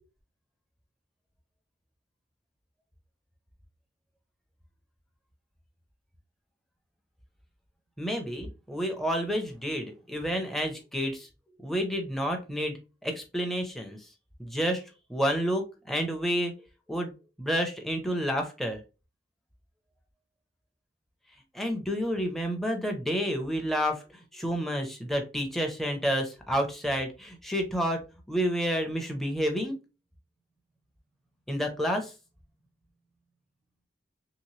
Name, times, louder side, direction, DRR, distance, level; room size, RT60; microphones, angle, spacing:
voice 1, 8.0-11.3 11.6-14.0 14.4-14.8 15.1-16.5 16.9-17.1 17.4-18.8 21.5-24.0 24.3-28.0 28.3-29.8 31.5-32.1, equal, ahead, 3 dB, 0.5 m, -29 dB
3.0 x 2.8 x 3.0 m, 0.30 s
head